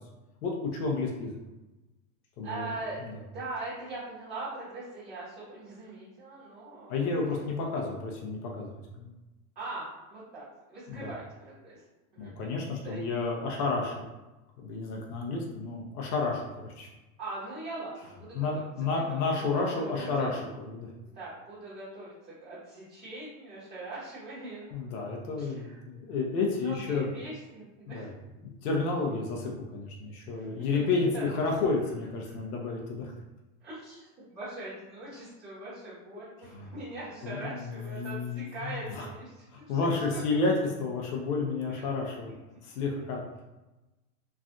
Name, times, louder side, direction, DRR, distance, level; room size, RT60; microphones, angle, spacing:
voice 1, 0.4-1.4 2.4-2.7 3.0-3.1 6.9-9.1 10.9-11.1 12.2-14.1 14.6-16.9 18.3-20.9 24.7-27.1 27.9-28.1 28.4-33.2 36.4-36.7 37.2-39.1 39.5-42.3 42.6-43.2, left 3 dB, 90° left, -1 dB, 0.8 m, -31 dB
voice 2, 2.4-3.1 3.3-7.4 9.5-11.2 11.6-11.8 12.1-12.5 12.8-13.0 17.2-18.6 18.9-19.2 19.5-20.3 21.0-25.0 25.4-25.8 26.1-26.2 26.5-28.1 30.3-30.5 31.1-31.3 32.2-32.5 33.6-39.8 40.1-40.4 41.7-41.9 43.0-43.1, right 2 dB, 20° right, -13 dB, 1.1 m, -41 dB
3.2 x 2.4 x 2.6 m, 1.1 s
supercardioid pair, 165°, 44 cm